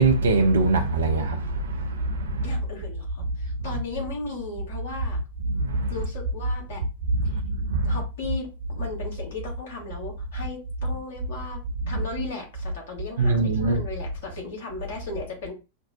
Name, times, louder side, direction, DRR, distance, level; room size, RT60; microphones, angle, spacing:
voice 1, 0.0-2.6 5.5-6.1 7.2-8.0 11.9-12.0 13.2-13.8, right 3 dB, 65° right, 0.4 m, -23 dB
voice 2, 2.4-5.2 5.9-6.8 7.3-7.4 7.8-11.6 11.9-15.5, left 3 dB, 60° left, 1.3 m, -36 dB
5.1 x 2.0 x 2.6 m
figure-of-eight pair, 90°, 0 cm